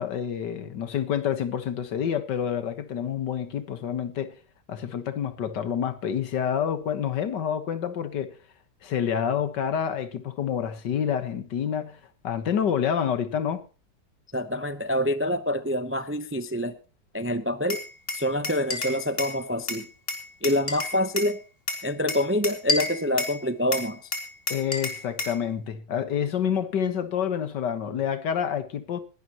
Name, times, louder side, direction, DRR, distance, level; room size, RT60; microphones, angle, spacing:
voice 1, 0.0-4.4 4.7-8.4 8.8-13.6 24.5-29.0, left 8 dB, 85° left, 2.0 m, -28 dB
voice 2, 14.3-16.8 17.1-17.8 18.1-19.9 20.4-21.4 21.8-24.1, left 1 dB, 20° right, 0.3 m, -26 dB
Glass, 17.7-19.4 19.7-21.3 21.7-23.4 23.7-25.4, left 3 dB, 35° left, 2.8 m, -30 dB
20.5 x 12.0 x 3.0 m
omnidirectional pair, 1.8 m